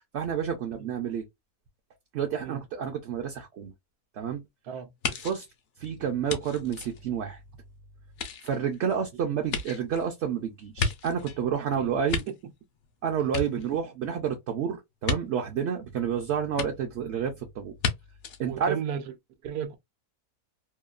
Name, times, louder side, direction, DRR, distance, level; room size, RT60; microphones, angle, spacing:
voice 1, 0.1-1.2 2.1-3.7 4.2-4.4 5.2-5.4 5.8-7.4 8.4-12.2 13.0-17.7 18.4-18.8, right 7 dB, 60° right, 0.7 m, -29 dB
sound 1, 5.0-7.6 8.1-11.4 11.8-12.9 13.2-14.1 15.0-15.2 16.6-16.7 17.8-17.9 18.2-18.4, left 5 dB, 60° left, 0.8 m, -33 dB
voice 2, 18.4-19.1 19.4-19.8, right 8 dB, 80° right, 1.1 m, -34 dB
2.9 x 2.3 x 2.3 m
omnidirectional pair, 1.6 m